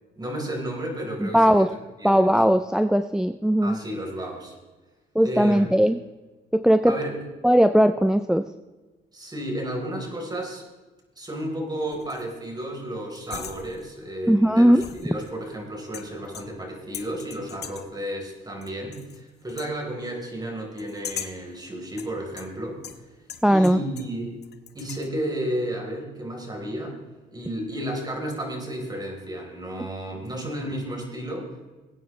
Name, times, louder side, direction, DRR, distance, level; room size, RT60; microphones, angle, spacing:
voice 1, 0.2-1.7 2.0-2.3 3.6-4.5 5.2-5.6 6.8-7.2 9.1-10.6 11.2-22.8 23.5-24.3 24.7-27.0 27.3-31.7, right 1 dB, 20° right, 1 dB, 4.0 m, -32 dB
voice 2, 1.2-1.7 2.0-3.8 5.2-6.0 6.5-7.0 7.4-8.5 14.3-14.8 23.4-23.8, equal, 5° right, 10 dB, 0.4 m, -18 dB
sound 1, 11.9-12.4 13.1-14.0 14.8-15.5 15.9-16.7 16.9-18.0 18.6-19.2 19.5-19.8 20.8-21.5 22.0-24.2 24.4-25.1, left 8 dB, 55° left, 1.0 m, -40 dB
19.5 x 9.3 x 3.2 m, 1.2 s
cardioid pair, 90°, 20 cm